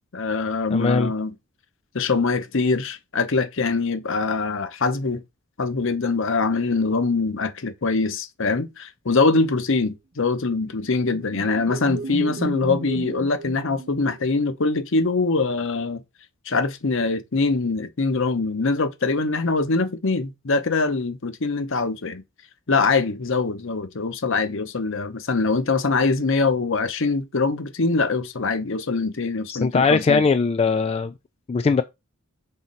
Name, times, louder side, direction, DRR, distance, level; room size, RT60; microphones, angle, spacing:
voice 1, 0.1-1.3 1.9-5.2 5.6-16.0 16.5-22.2 22.7-30.2, left 3 dB, 65° left, 0.8 m, -23 dB
voice 2, 0.7-1.1 29.5-31.1 31.5-31.8, left 4 dB, 30° left, 0.3 m, -20 dB
sound 1, 10.5-14.5, right 3 dB, 50° right, 0.6 m, -34 dB
5.7 x 4.2 x 3.9 m
head